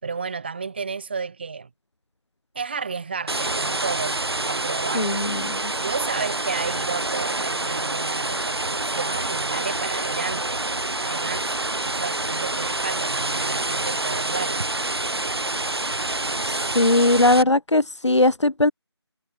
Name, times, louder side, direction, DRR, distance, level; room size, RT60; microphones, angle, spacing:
voice 1, 0.0-1.7 2.5-4.2 4.5-5.1 5.7-10.6 11.0-11.5 11.8-14.7, right 5 dB, 20° right, 6.0 m, -32 dB
sound 1, 3.3-17.4, right 2 dB, 60° right, 2.5 m, -27 dB
voice 2, 4.9-5.7 16.4-18.7, left 2 dB, 85° left, 1.6 m, -20 dB
figure-of-eight pair, 175°, 15 cm